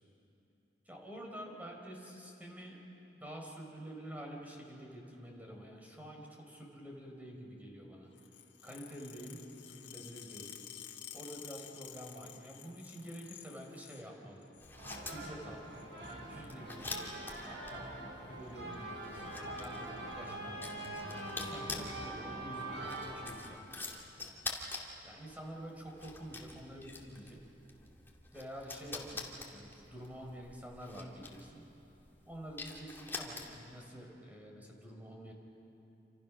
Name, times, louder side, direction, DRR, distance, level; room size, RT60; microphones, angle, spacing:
voice 1, 0.9-8.1 8.6-10.6 11.1-14.5 15.1-17.1 17.4-20.6 21.3-23.7 24.2-24.4 25.0-27.4 28.3-31.7 32.3-35.3, equal, 10° right, 0 dB, 4.2 m, -48 dB
sound 1, 8.1-14.1 14.4-15.0 15.7-16.2 17.3-17.5 18.5-18.7 19.0-19.2 19.4-19.5 19.8-20.3 20.9-21.0 21.9-22.1, left 11 dB, 70° left, 1.8 m, -52 dB
sound 2, 14.6-33.8, left 3 dB, 10° left, 2.4 m, -47 dB
sound 3, 14.8-23.1, right 1 dB, 65° right, 6.8 m, -43 dB
28.0 x 27.0 x 6.2 m, 3.0 s
head